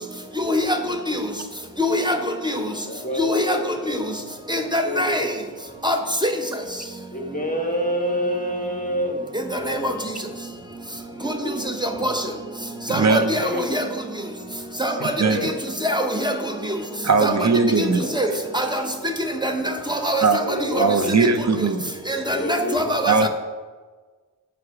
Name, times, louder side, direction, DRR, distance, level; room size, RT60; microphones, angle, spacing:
voice 1, 1.8-2.2 2.4-2.6 3.2-3.6 3.9-4.0 4.5-5.3 5.8-6.0 6.2-6.3 9.7-9.9 11.2-11.3 12.0-12.1 12.9-13.8 14.8-15.1 15.8-16.3 17.2-17.3 17.8-17.9 18.1-18.3 18.5-18.8 19.4-19.6 19.9-20.4 20.7-20.9 22.1-23.3, equal, 10° right, 4 dB, 0.8 m, -23 dB
voice 2, 2.9-4.1 4.8-5.2 7.1-9.9 10.3-10.4 11.1-11.7 12.0-12.2 13.1-13.6 14.9-15.5 17.7-18.4 18.7-18.9 20.4-21.3 22.2-22.9, equal, 20° left, 1 dB, 1.1 m, -29 dB
voice 3, 12.9-13.4 15.0-15.5 17.0-18.0 20.2-20.4 20.7-22.2 23.1-23.3, right 4 dB, 45° right, 8 dB, 0.7 m, -20 dB
8.3 x 4.8 x 4.8 m, 1.4 s
wide cardioid pair, 65°, 40 cm